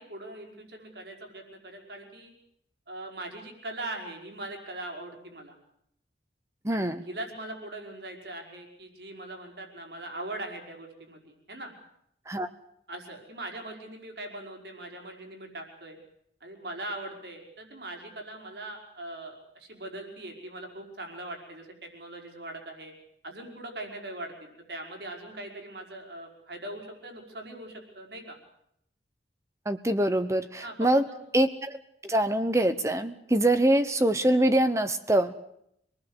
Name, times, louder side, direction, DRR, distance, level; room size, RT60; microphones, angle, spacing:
voice 1, 0.0-2.3 2.9-5.5 6.7-11.7 12.9-16.0 16.4-22.9 23.2-28.4 30.6-31.2, right 1 dB, 70° right, 2 dB, 5.3 m, -41 dB
voice 2, 6.6-7.0 12.3-12.5 29.6-31.1 31.3-31.8 32.0-35.3, right 1 dB, 15° right, 10 dB, 1.0 m, -24 dB
26.5 x 19.5 x 8.2 m, 0.74 s
head